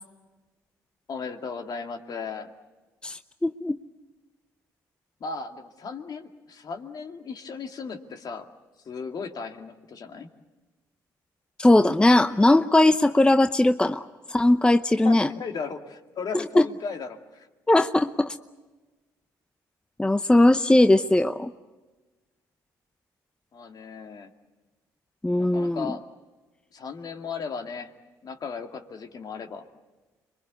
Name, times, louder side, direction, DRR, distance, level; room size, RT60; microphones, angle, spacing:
voice 1, 1.1-2.5 5.2-8.5 8.9-10.3 15.0-17.5 23.5-24.3 25.4-26.0 26.7-27.9 28.2-29.6, left 5 dB, 55° left, 5 dB, 2.2 m, -36 dB
voice 2, 3.0-3.7 11.6-14.0 14.3-15.3 16.6-16.7 17.7-18.4 20.0-21.5 25.2-26.0, left 1 dB, 10° left, 10 dB, 0.8 m, -19 dB
26.5 x 23.0 x 8.1 m, 1.2 s
supercardioid pair, 60°, 8 cm